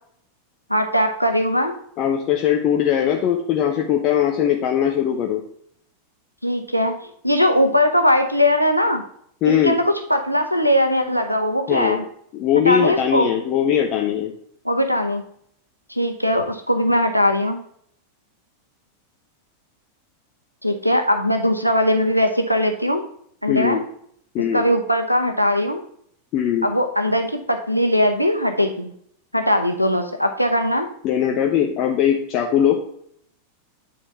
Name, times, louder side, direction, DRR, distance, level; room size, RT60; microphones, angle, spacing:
voice 1, 0.7-1.8 6.4-6.9 7.2-9.0 9.5-12.0 12.7-13.3 14.6-15.2 15.9-17.6 20.6-23.0 23.4-23.8 24.5-25.8 26.6-28.9 29.3-30.9, equal, 90° right, 7 dB, 0.7 m, -20 dB
voice 2, 2.0-5.4 9.4-9.8 11.7-12.0 12.3-14.3 23.5-23.8 24.3-24.7 26.3-26.7 31.0-32.8, left 9 dB, 40° left, 2 dB, 1.0 m, -20 dB
9.3 x 4.3 x 5.7 m, 0.66 s
figure-of-eight pair, 90°, 0 cm